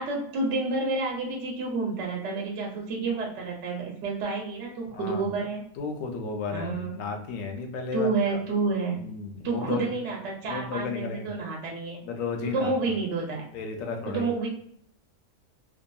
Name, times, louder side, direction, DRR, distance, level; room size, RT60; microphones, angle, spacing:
voice 1, 0.0-5.6 6.5-7.0 7.9-9.0 9.4-12.0 12.4-13.4 14.1-14.5, right 3 dB, 65° right, -1 dB, 0.9 m, -29 dB
voice 2, 4.9-5.3 5.8-8.4 8.9-9.9 10.4-11.3 12.0-12.7 13.5-14.3, left 4 dB, 75° left, 4 dB, 0.9 m, -33 dB
2.7 x 2.5 x 2.2 m, 0.66 s
omnidirectional pair, 1.4 m